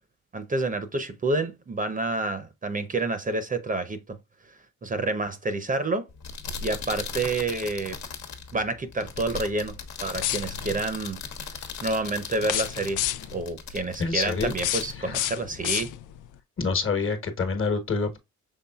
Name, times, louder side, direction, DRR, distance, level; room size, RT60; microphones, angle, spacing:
voice 1, 0.3-4.2 4.8-6.1 6.6-8.0 8.5-9.7 10.0-11.2 11.8-13.0 13.3-15.9, right 2 dB, 25° right, 0.7 m, -28 dB
sound 1, 6.1-15.9, left 5 dB, 70° left, 1.2 m, -38 dB
sound 2, 10.2-10.8 12.4-13.4 14.4-16.3, left 13 dB, 90° left, 0.5 m, -30 dB
voice 2, 14.0-14.5 15.0-15.2 16.6-18.2, left 4 dB, 45° left, 1.3 m, -27 dB
5.6 x 3.6 x 2.3 m
cardioid pair, 90°, 30 cm